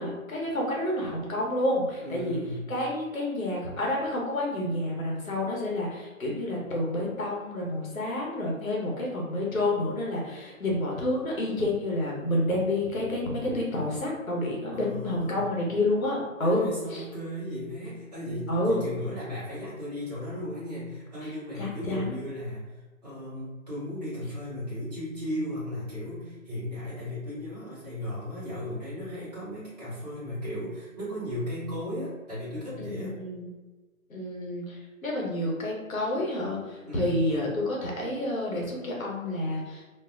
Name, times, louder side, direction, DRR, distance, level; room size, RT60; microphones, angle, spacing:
voice 1, 0.0-2.4 2.7-17.0 18.5-18.9 21.6-22.2 32.8-33.5 34.1-39.8, left 1 dB, 75° left, -3 dB, 1.0 m, -29 dB
voice 2, 2.0-2.7 14.7-15.4 16.4-22.7 23.0-33.2 36.9-37.3, left 1 dB, 30° right, -12 dB, 1.0 m, -36 dB
2.6 x 2.2 x 2.4 m, 1.2 s
hypercardioid pair, 180°, 41 cm